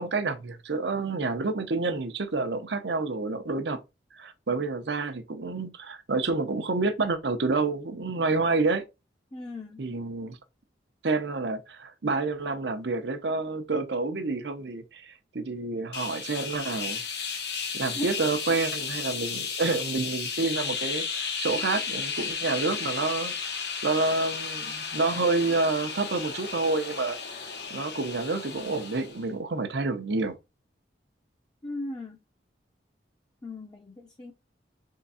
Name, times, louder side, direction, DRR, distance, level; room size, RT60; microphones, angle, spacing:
voice 1, 0.0-3.8 4.1-8.8 9.8-10.4 11.0-17.0 17.7-27.2 27.7-30.4, right 3 dB, 70° right, 0.8 m, -28 dB
voice 2, 9.3-9.8 18.0-18.1 31.6-32.2 33.4-34.3, left 1 dB, 20° left, 0.6 m, -37 dB
sound 1, 15.9-29.3, left 6 dB, 65° left, 0.9 m, -34 dB
3.8 x 3.5 x 4.1 m
head